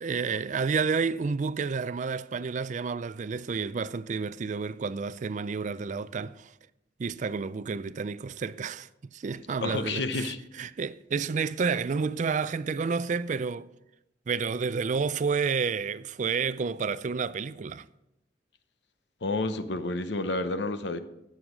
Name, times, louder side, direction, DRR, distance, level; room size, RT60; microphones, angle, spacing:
voice 1, 0.0-6.5 7.0-13.7 14.3-17.8, right 5 dB, 40° right, 0.4 m, -30 dB
voice 2, 9.6-10.4 19.2-21.0, left 2 dB, 70° left, 0.8 m, -30 dB
15.0 x 6.4 x 5.1 m
head